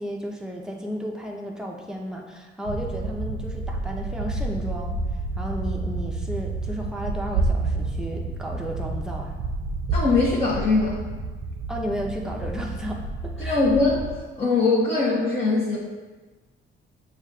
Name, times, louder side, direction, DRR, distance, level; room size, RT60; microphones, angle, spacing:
voice 1, 0.0-5.0 5.4-9.3 11.7-13.6, equal, 5° right, -1 dB, 0.6 m, -33 dB
sound 1, 2.6-14.2, right 3 dB, 65° right, 0.4 m, -29 dB
voice 2, 9.9-11.0 13.4-14.1 14.4-15.8, left 3 dB, 30° left, -9 dB, 0.9 m, -21 dB
6.9 x 2.4 x 2.3 m, 1.3 s
cardioid pair, 90°, 20 cm